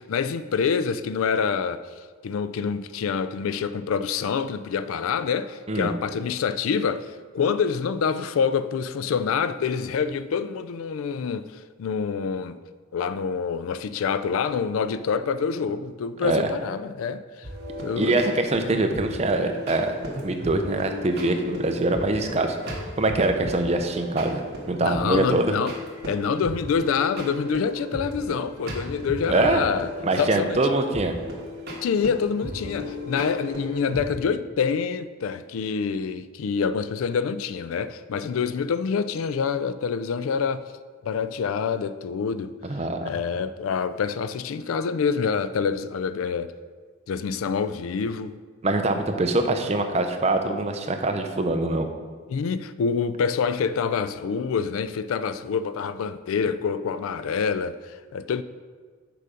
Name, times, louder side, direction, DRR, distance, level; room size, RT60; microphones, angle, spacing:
voice 1, 0.0-1.8 2.2-12.6 12.9-17.5 17.8-18.2 24.8-25.7 26.0-29.9 30.2-30.6 31.8-40.7 41.1-42.5 43.0-46.5 47.1-48.4 52.3-58.4, left 6 dB, 85° left, 0.3 m, -26 dB
sound 1, 17.4-34.3, left 1 dB, 50° right, 1.4 m, -36 dB
voice 2, 18.0-22.6 23.0-25.5 29.3-29.6 30.0-31.1 42.7-43.1 48.6-51.9, right 2 dB, 30° right, 0.6 m, -24 dB
6.7 x 4.9 x 5.1 m
head